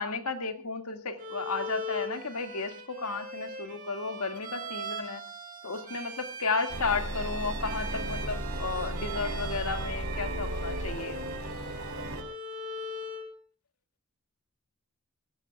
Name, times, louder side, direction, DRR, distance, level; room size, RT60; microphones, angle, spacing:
voice 1, 0.0-5.2 5.6-11.2, left 4 dB, 90° left, 6 dB, 2.1 m, -33 dB
Bowed string instrument, 1.2-13.3, equal, 40° right, 4.5 m, -41 dB
sound 1, 6.7-12.2, right 1 dB, 85° right, 3.4 m, -35 dB
23.5 x 19.0 x 2.4 m, 0.34 s
head